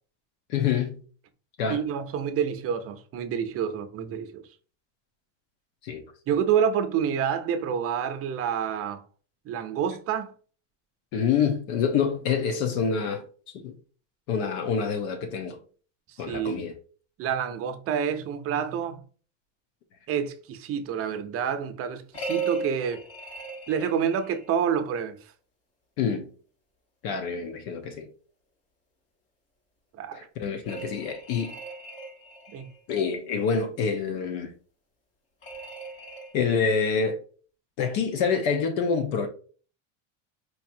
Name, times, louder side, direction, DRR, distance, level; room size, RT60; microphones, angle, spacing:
voice 1, 0.5-1.0 1.6-1.8 5.8-6.0 11.1-13.2 13.5-13.7 14.3-15.6 16.2-16.7 26.0-26.3 27.0-28.1 30.1-31.5 32.9-34.5 36.3-37.2 37.8-39.3, left 6 dB, 65° left, 0.9 m, -26 dB
voice 2, 1.7-4.5 6.3-9.0 9.5-10.3 16.3-16.6 17.2-19.0 20.1-23.0 23.7-25.2 30.0-30.2 32.5-32.7, right 8 dB, 40° right, 0.6 m, -28 dB
sound 1, 22.1-24.6 30.6-32.8 35.4-36.9, right 4 dB, 40° left, 1.5 m, -37 dB
4.6 x 2.8 x 2.6 m
supercardioid pair, 115°, 37 cm